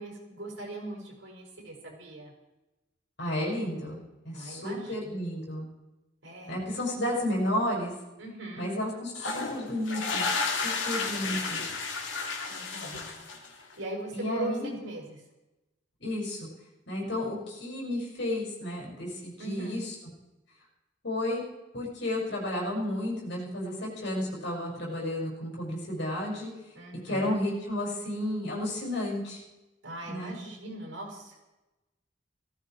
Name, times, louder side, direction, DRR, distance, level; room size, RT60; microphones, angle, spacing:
voice 1, 0.0-2.3 4.3-5.2 6.2-6.6 8.2-8.7 11.2-11.4 12.5-13.0 13.8-14.6 14.8-15.2 19.4-19.8 26.7-27.3 29.8-31.4, right 2 dB, 80° right, -1 dB, 5.6 m, -40 dB
voice 2, 3.2-5.7 6.5-7.9 8.6-11.6 14.1-14.8 16.0-16.5 16.9-19.9 21.0-21.4 21.7-26.5 27.0-29.4 30.1-30.3, left 1 dB, 65° left, -2 dB, 6.1 m, -32 dB
sound 1, 9.1-13.7, left 4 dB, 80° left, 2.6 m, -32 dB
17.5 x 15.0 x 4.6 m, 1.0 s
head